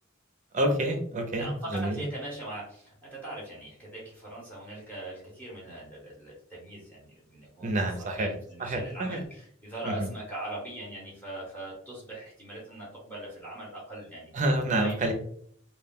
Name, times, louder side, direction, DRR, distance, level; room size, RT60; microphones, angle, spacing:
voice 1, 0.5-2.0 7.6-8.3 8.6-9.2 9.8-10.1 14.3-15.1, right 1 dB, 35° right, 4 dB, 0.6 m, -28 dB
voice 2, 1.3-14.3 14.8-15.1, right 1 dB, 10° left, -6 dB, 0.9 m, -41 dB
2.3 x 2.2 x 3.5 m, 0.63 s
head